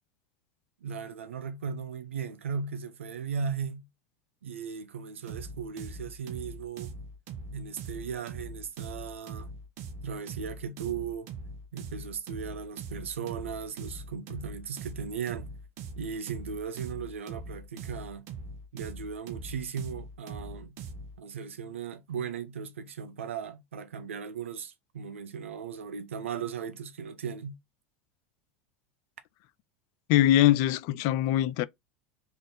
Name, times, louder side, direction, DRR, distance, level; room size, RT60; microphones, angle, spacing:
voice 1, 0.8-3.9 4.4-7.0 7.5-9.5 10.0-11.3 11.7-15.5 16.0-18.3 18.7-20.8 21.2-27.6, right 6 dB, 85° right, 0.5 m, -37 dB
sound 1, 5.3-21.2, right 3 dB, 55° right, 0.9 m, -42 dB
voice 2, 30.1-31.7, left 13 dB, 55° left, 0.3 m, -22 dB
3.4 x 2.5 x 4.0 m
hypercardioid pair, 85°, 7 cm